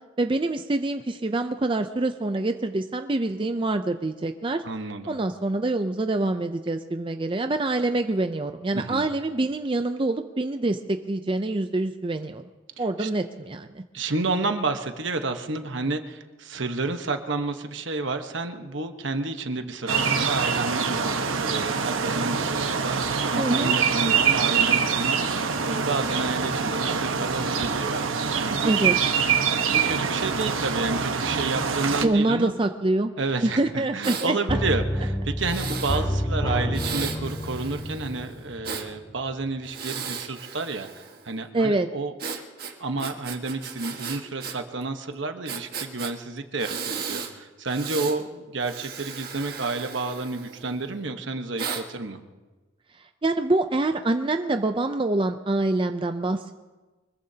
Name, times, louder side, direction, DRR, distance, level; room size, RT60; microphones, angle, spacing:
voice 1, 0.2-4.6 5.1-12.4 12.8-13.8 23.3-23.7 28.6-29.0 32.0-33.1 33.4-34.6 41.5-41.9 53.2-56.5, right 2 dB, 25° right, 7 dB, 0.5 m, -25 dB
voice 2, 4.6-5.2 8.7-9.1 12.8-13.1 13.9-28.7 29.1-32.5 33.2-42.1 42.8-52.2, right 3 dB, 65° right, 6 dB, 1.2 m, -30 dB
Summer day, 19.9-32.1, right 6 dB, 85° right, 1.2 m, -25 dB
Breathing, 34.0-34.3 35.4-36.0 36.7-38.9 39.6-41.3 42.2-44.6 44.8-44.9 45.5-46.1 46.6-47.3 47.7-48.2 48.6-50.8 51.6-51.8, right 6 dB, 50° right, 1.6 m, -35 dB
sound 1, 34.5-39.2 39.5-39.6, equal, 20° left, 1.0 m, -28 dB
24.5 x 21.0 x 2.8 m, 1.3 s
head